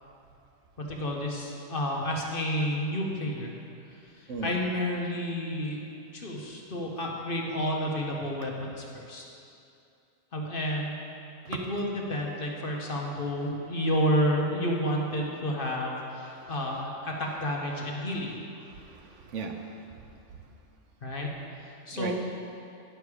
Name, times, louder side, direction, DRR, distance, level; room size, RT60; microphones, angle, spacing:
voice 1, 0.8-3.5 4.2-5.8 6.1-9.2 10.3-11.0 11.5-18.4 21.0-21.3 21.6-22.1, equal, 45° left, -1 dB, 1.0 m, -30 dB
voice 2, 4.3-4.6 11.4-11.6 16.3-16.5 18.7-19.8 21.9-22.1, right 4 dB, 65° right, 4 dB, 0.9 m, -37 dB
10.5 x 6.7 x 4.7 m, 2.6 s
omnidirectional pair, 1.4 m